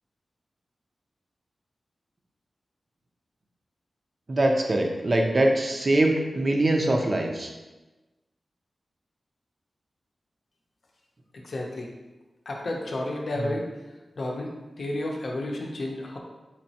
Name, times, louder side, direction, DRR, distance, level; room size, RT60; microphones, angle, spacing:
voice 1, 4.3-7.5, right 1 dB, 40° right, 2 dB, 0.5 m, -23 dB
voice 2, 11.3-11.9 12.5-13.7 14.2-14.5 14.8-16.2, left 1 dB, 60° left, 0 dB, 0.6 m, -31 dB
4.4 x 3.0 x 2.8 m, 1.1 s
wide cardioid pair, 120°, 0 cm